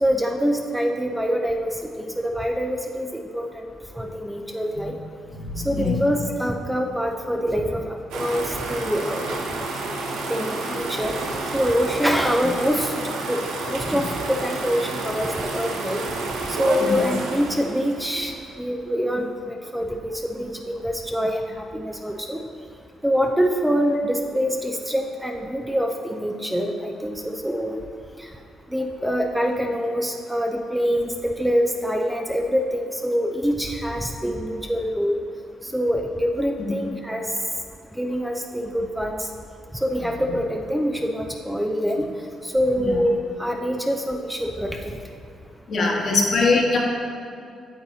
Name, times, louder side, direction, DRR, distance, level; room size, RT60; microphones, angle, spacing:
voice 1, 0.0-1.7 2.0-3.7 3.9-4.9 5.6-9.2 10.3-11.2 11.5-12.9 13.3-13.4 13.7-16.0 16.5-18.3 18.6-22.4 23.0-27.8 28.2-28.3 28.7-35.2 35.6-37.2 37.9-39.3 39.8-42.1 42.4-44.9, equal, 5° right, 2 dB, 0.5 m, -25 dB
voice 2, 5.4-5.9 16.8-16.9 36.6-36.7 42.8-42.9 45.7-46.8, left 3 dB, 55° left, -1 dB, 1.4 m, -22 dB
sound 1, 8.1-18.6, right 3 dB, 90° right, 0.9 m, -30 dB
8.7 x 7.2 x 2.8 m, 2.4 s
cardioid pair, 90°, 0 cm